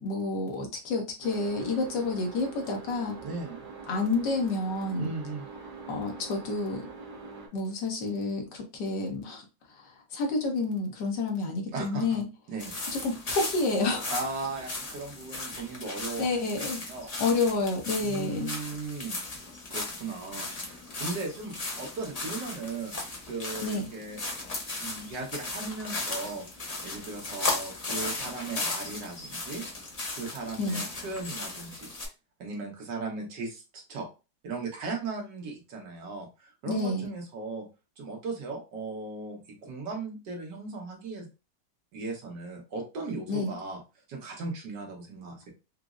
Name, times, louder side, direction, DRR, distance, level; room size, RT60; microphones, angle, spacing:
voice 1, 0.0-3.2 3.9-5.1 5.9-6.8 7.5-9.4 9.8-12.3 12.9-14.1 16.2-16.8 17.2-18.5 23.6-23.9 30.6-30.8 36.7-37.1 43.3-43.5, left 3 dB, 80° left, 1 dB, 1.6 m, -29 dB
sound 1, 1.2-7.5, right 4 dB, 40° right, 0.8 m, -44 dB
voice 2, 3.2-3.6 5.0-5.5 11.7-12.2 12.5-12.8 14.1-16.3 16.6-17.1 18.0-19.2 19.7-22.9 23.3-24.2 24.8-26.5 26.8-29.6 30.1-31.9 32.4-34.1 34.4-37.7 38.0-41.3 41.9-43.8 44.1-45.5, right 3 dB, 75° right, 0 dB, 1.7 m, -37 dB
sound 2, 12.6-32.1, left 3 dB, 60° left, 0.4 m, -36 dB
5.1 x 2.0 x 2.4 m, 0.29 s
omnidirectional pair, 1.9 m